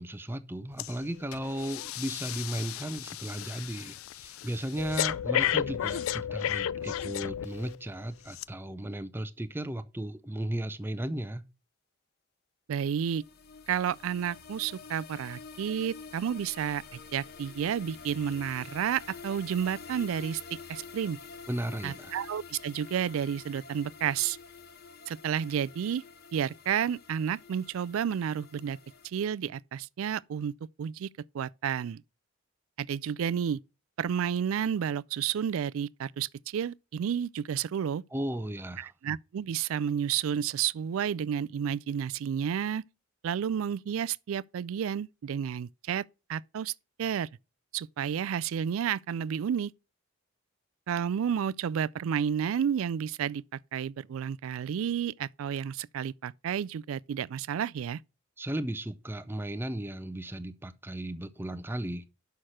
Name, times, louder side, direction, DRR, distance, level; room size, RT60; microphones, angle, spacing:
voice 1, 0.0-11.4 21.5-22.2 38.1-38.9 58.4-62.1, right 1 dB, 10° right, 0.5 m, -35 dB
Breathing, 0.8-1.0 1.3-7.8 8.3-8.4, left 10 dB, 80° left, 0.3 m, -33 dB
voice 2, 12.7-13.2 13.7-21.2 21.8-24.4 25.1-26.0 26.3-28.8 29.0-30.5 30.8-31.1 31.3-32.0 32.8-33.6 34.0-38.0 38.8-42.8 43.2-46.0 46.3-46.7 47.0-47.3 47.7-49.7 50.9-53.4 53.7-58.0, right 8 dB, 80° right, 0.3 m, -31 dB
sound 1, 12.9-29.1, left 5 dB, 50° left, 0.8 m, -48 dB
6.5 x 5.8 x 6.4 m
head